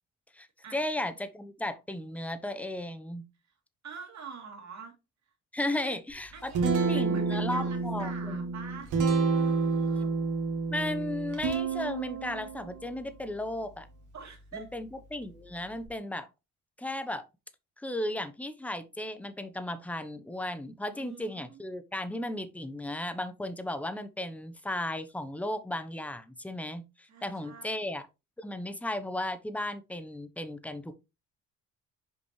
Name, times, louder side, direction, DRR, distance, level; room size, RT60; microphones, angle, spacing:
voice 1, 0.7-3.2 5.5-6.5 6.9-8.4 10.7-13.9 14.5-16.3 16.8-17.2 17.8-28.1 28.4-31.0, left 1 dB, 5° left, 0.9 m, -35 dB
voice 2, 3.8-4.9 5.6-6.0 6.3-8.9 9.3-10.1 14.1-14.7 20.9-21.6 27.1-27.9, right 6 dB, 65° right, 3.0 m, -46 dB
Guitar, 6.1-15.9, right 4 dB, 85° right, 2.4 m, -31 dB
6.7 x 5.2 x 3.2 m
cardioid pair, 90°, 30 cm